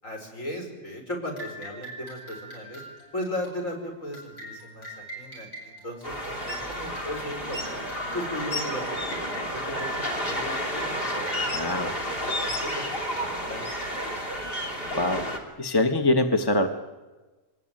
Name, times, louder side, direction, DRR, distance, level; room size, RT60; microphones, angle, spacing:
voice 1, 0.0-2.8 3.1-7.8 8.1-13.6, equal, 55° left, 1 dB, 5.8 m, -37 dB
sound 1, 1.4-15.5, equal, 70° left, 8.7 m, -43 dB
sound 2, 6.0-15.4, equal, 35° left, 3.2 m, -31 dB
voice 2, 11.5-11.9 14.6-14.7 14.9-15.3 15.6-16.7, left 2 dB, 15° left, 6 dB, 1.2 m, -23 dB
23.5 x 20.5 x 9.0 m, 1.2 s
omnidirectional pair, 1.6 m